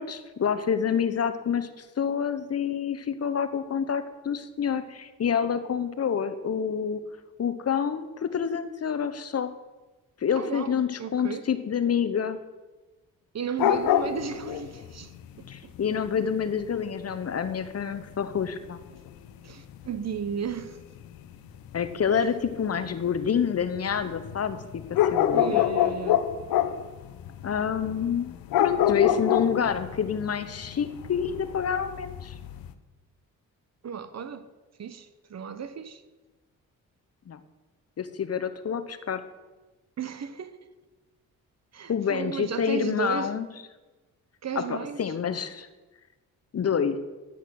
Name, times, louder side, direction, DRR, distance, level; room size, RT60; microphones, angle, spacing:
voice 1, 0.0-1.7 2.0-7.0 7.4-9.5 10.2-12.4 15.5-18.8 21.7-25.6 27.4-28.3 28.6-32.3 37.3-37.4 38.0-39.2 41.9-43.5 44.5-45.7 46.5-47.0, left 7 dB, 45° left, 0.9 m, -28 dB
voice 2, 10.4-11.5 13.3-15.1 15.6-15.7 19.4-20.8 25.3-26.2 33.8-34.5 34.8-36.0 40.0-40.6 41.7-43.3 44.4-45.0, right 7 dB, 50° right, 1.0 m, -34 dB
sound 1, 13.6-20.7 20.9-32.7, left 11 dB, 85° left, 0.8 m, -27 dB
11.0 x 8.2 x 6.4 m
cardioid pair, 75°, 35 cm